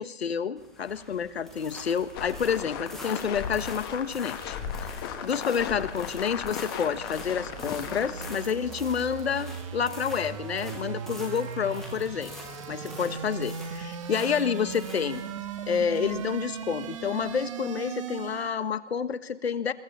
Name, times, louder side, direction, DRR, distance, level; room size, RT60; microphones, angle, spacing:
voice 1, 0.0-4.6 4.8-12.3 12.7-15.2 15.6-19.7, left 7 dB, 60° left, 13 dB, 1.5 m, -29 dB
sound 1, 0.6-17.5, left 1 dB, ahead, 0.7 m, -47 dB
sound 2, 2.1-8.4, left 7 dB, 20° left, 1.5 m, -36 dB
sound 3, 6.5-18.6, right 7 dB, 25° right, 1.3 m, -38 dB
21.5 x 18.5 x 7.2 m, 0.80 s
hypercardioid pair, 160°, 35 cm